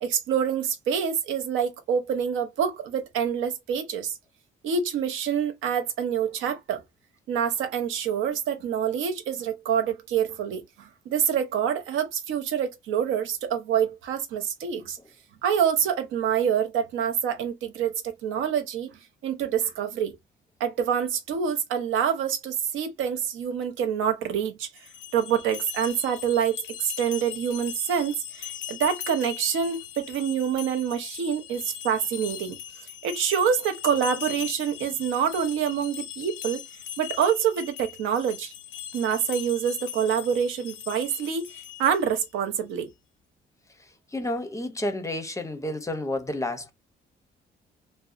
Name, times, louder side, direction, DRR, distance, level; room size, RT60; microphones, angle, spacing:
voice 1, 0.0-4.1 4.6-6.8 7.3-15.0 15.4-18.9 19.2-20.2 20.6-24.7 25.1-32.6 33.0-36.6 37.0-38.5 38.9-41.5 41.8-42.9, right 8 dB, 85° right, 0.5 m, -26 dB
sound 1, 24.8-42.2, left 11 dB, 80° left, 0.5 m, -39 dB
voice 2, 44.1-46.7, left 1 dB, 15° left, 0.5 m, -30 dB
2.6 x 2.1 x 2.3 m
cardioid pair, 90°, 20 cm